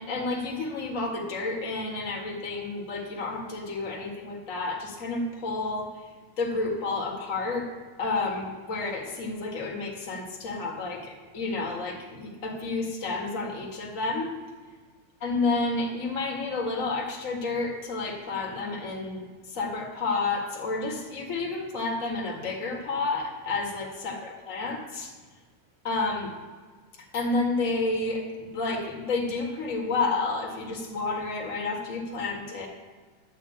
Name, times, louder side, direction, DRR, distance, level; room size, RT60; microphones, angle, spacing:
voice 1, 0.0-6.1 6.4-7.7 8.0-14.3 15.2-25.1 25.8-26.3 27.0-32.7, left 3 dB, 40° left, -2 dB, 2.2 m, -30 dB
10.5 x 5.6 x 8.6 m, 1.4 s
omnidirectional pair, 2.3 m